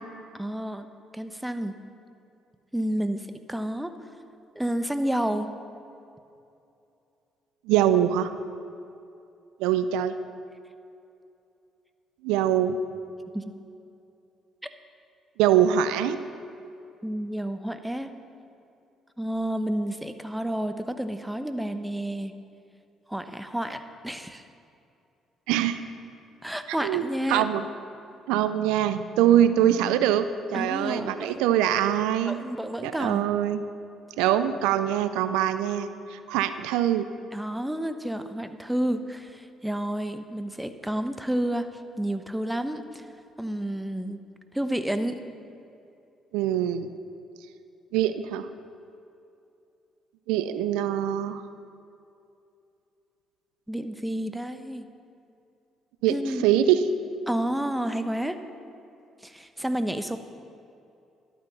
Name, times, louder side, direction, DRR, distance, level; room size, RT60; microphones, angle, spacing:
voice 1, 0.3-0.9 1.1-1.7 2.7-3.9 4.5-5.5 13.3-13.4 17.0-18.1 19.2-22.3 23.1-24.4 26.4-27.5 30.5-31.4 32.3-33.3 37.3-41.7 42.0-43.1 43.4-44.2 44.5-45.2 53.7-54.8 56.1-56.4 57.3-58.4 59.2-60.2, right 1 dB, 5° right, 9 dB, 1.0 m, -30 dB
voice 2, 7.7-8.3 9.6-10.2 12.2-12.8 15.4-16.2 25.5-25.8 26.8-27.6 28.3-32.4 32.8-33.6 34.2-37.0 46.3-46.9 47.9-48.5 50.3-51.4 56.0-56.2 56.4-56.8, right 11 dB, 80° right, 11 dB, 0.4 m, -23 dB
12.0 x 9.2 x 6.9 m, 2.7 s
hypercardioid pair, 55°, 0 cm